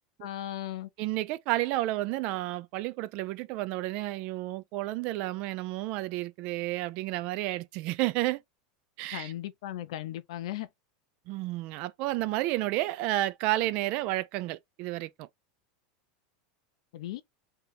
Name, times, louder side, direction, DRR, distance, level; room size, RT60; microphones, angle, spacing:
voice 1, 0.2-0.9 9.1-10.7 16.9-17.2, left 13 dB, 70° left, 0.6 m, -37 dB
voice 2, 1.0-8.4 9.0-9.3 11.3-15.3, right 17 dB, 40° right, 0.4 m, -31 dB
3.4 x 2.8 x 3.5 m
supercardioid pair, 170°, 3 cm